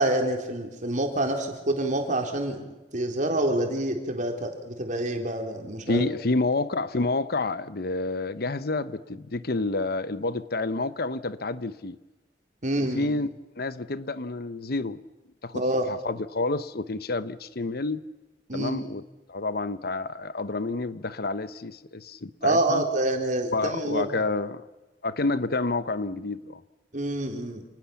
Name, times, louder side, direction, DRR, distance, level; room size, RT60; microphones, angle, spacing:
voice 1, 0.0-2.6 2.9-6.1 12.6-13.1 15.5-15.9 18.5-18.8 22.4-24.0 26.9-27.6, right 1 dB, 45° right, 4 dB, 4.0 m, -27 dB
voice 2, 5.9-12.0 12.8-13.3 13.6-15.0 15.4-18.0 18.5-19.0 19.3-22.8 23.5-24.6 25.0-26.6, left 3 dB, 60° left, 14 dB, 0.9 m, -29 dB
28.5 x 20.0 x 7.2 m, 1.1 s
head